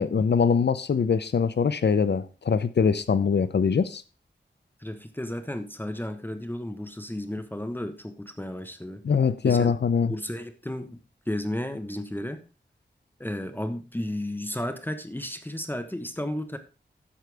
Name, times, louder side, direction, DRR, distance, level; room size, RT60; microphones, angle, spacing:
voice 1, 0.0-4.0 9.0-10.1, left 6 dB, 65° left, 0.7 m, -23 dB
voice 2, 4.8-9.0 9.4-9.7 10.0-12.4 13.2-16.6, left 1 dB, 10° left, 1.1 m, -33 dB
11.0 x 7.9 x 3.4 m
wide cardioid pair, 85°, 19 cm